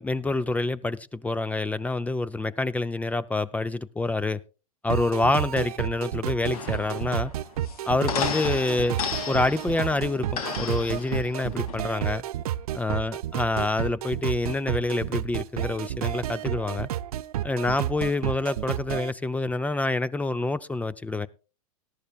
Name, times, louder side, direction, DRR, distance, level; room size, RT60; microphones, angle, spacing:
voice 1, 0.0-4.4 4.8-7.3 7.8-9.0 9.3-12.2 12.7-16.9 17.4-21.3, left 2 dB, 10° left, 0.5 m, -27 dB
sound 1, 4.9-19.1, right 12 dB, 80° right, 0.6 m, -31 dB
sound 2, 6.5-11.8, left 6 dB, 75° left, 2.6 m, -34 dB
18.0 x 12.5 x 2.3 m
hypercardioid pair, 120°, 19 cm